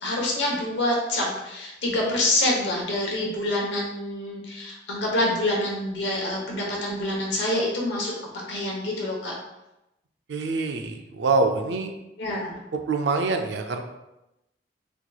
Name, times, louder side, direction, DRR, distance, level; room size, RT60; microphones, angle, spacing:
voice 1, 0.0-9.3 12.2-12.6, left 1 dB, 90° left, -2 dB, 1.0 m, -26 dB
voice 2, 10.3-11.9 12.9-13.8, right 3 dB, 85° right, 6 dB, 0.4 m, -25 dB
4.4 x 2.9 x 2.3 m, 0.92 s
head